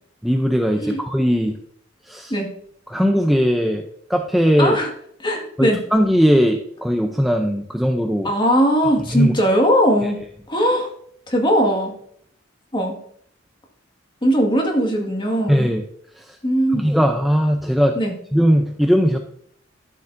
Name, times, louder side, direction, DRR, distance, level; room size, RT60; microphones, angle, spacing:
voice 1, 0.2-1.6 2.0-2.3 2.9-4.8 5.6-8.3 9.1-9.3 10.0-10.1 15.5-15.8 16.2-16.4 16.7-18.0 18.3-19.2, equal, ahead, 3 dB, 0.5 m, -19 dB
voice 2, 4.6-4.9 5.2-5.8 8.2-10.2 10.5-10.9 11.3-11.9 12.7-13.0 14.2-15.7 16.4-16.9 18.0-18.1, equal, 25° left, 1 dB, 1.7 m, -19 dB
13.0 x 6.9 x 2.6 m, 0.66 s
head